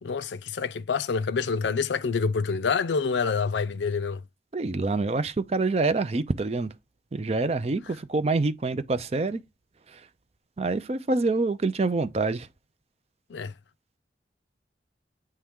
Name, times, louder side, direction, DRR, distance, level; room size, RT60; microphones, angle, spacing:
voice 1, 0.0-4.2 13.3-13.5, left 5 dB, 80° left, 0.5 m, -27 dB
voice 2, 4.5-6.7 7.1-9.4 9.9-10.0 10.6-12.5, right 3 dB, 35° right, 0.4 m, -26 dB
8.4 x 3.3 x 3.6 m
head